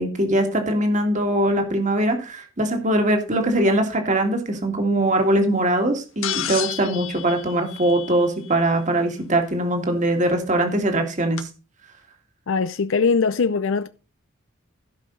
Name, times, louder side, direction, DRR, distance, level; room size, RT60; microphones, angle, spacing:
voice 1, 0.0-11.5, right 1 dB, 35° right, 2.2 m, -21 dB
sound 1, 6.2-8.5 10.1-10.2 11.4-11.5, left 11 dB, 85° left, 1.6 m, -31 dB
voice 2, 12.5-13.9, left 5 dB, 70° left, 0.5 m, -21 dB
15.5 x 5.7 x 3.9 m
head